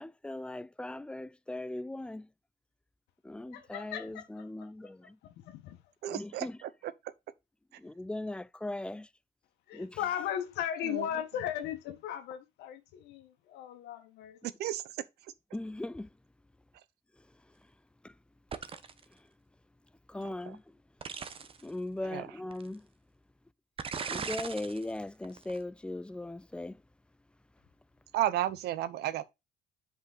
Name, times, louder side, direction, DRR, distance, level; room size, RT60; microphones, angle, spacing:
voice 1, 0.0-2.3 3.2-5.2 6.1-6.6 7.8-9.1 9.7-10.0 15.5-16.1 18.0-18.1 19.1-19.2 20.1-20.8 21.6-22.9 24.1-26.8, left 1 dB, 5° left, 0.3 m, -39 dB
voice 2, 3.5-4.9 5.2-5.8 9.7-14.4, left 10 dB, 85° left, 1.5 m, -37 dB
voice 3, 6.0-6.9 10.9-11.1 14.6-14.8 22.1-22.3 28.1-29.2, right 13 dB, 75° right, 0.8 m, -32 dB
sound 1, 18.5-19.0 21.0-21.6 22.5-22.6 23.8-24.8 25.2-25.6, right 6 dB, 35° right, 0.9 m, -38 dB
8.0 x 5.1 x 3.9 m
cardioid pair, 110°, 17 cm